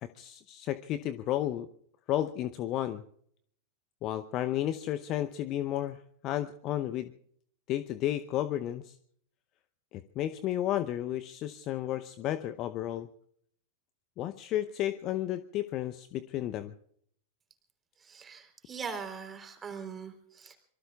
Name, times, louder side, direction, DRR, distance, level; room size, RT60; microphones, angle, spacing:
voice 1, 0.0-1.7 2.1-3.0 4.0-7.1 7.7-9.0 9.9-13.1 14.2-16.7, left 12 dB, 35° left, 12 dB, 0.7 m, -32 dB
voice 2, 18.0-20.6, right 6 dB, 20° right, 5 dB, 3.7 m, -41 dB
26.0 x 23.5 x 2.4 m, 0.63 s
figure-of-eight pair, 90°, 0 cm